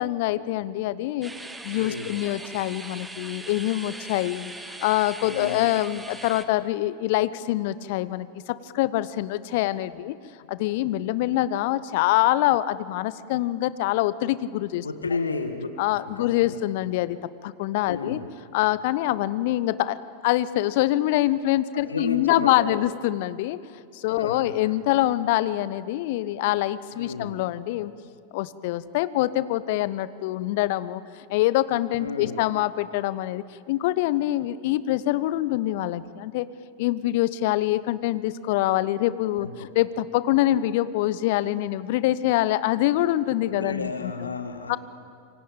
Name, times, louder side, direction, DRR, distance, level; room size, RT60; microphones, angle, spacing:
voice 1, 0.0-1.3 1.6-10.2 10.5-14.9 15.8-18.2 18.5-20.0 20.2-23.6 23.9-27.9 28.3-36.5 36.8-44.3 44.7-44.8, left 15 dB, 50° left, 17 dB, 0.9 m, -25 dB
sound 1, 1.2-6.5, right 2 dB, 10° right, 1.7 m, -40 dB
voice 2, 1.7-2.2 5.2-5.7 14.8-15.7 16.1-16.5 17.9-18.3 21.9-22.8 24.1-24.7 26.9-27.3 32.0-32.4 39.4-39.7 43.4-44.8, left 4 dB, 75° left, 8 dB, 1.6 m, -32 dB
27.0 x 24.0 x 9.0 m, 2.3 s
figure-of-eight pair, 90°, 0 cm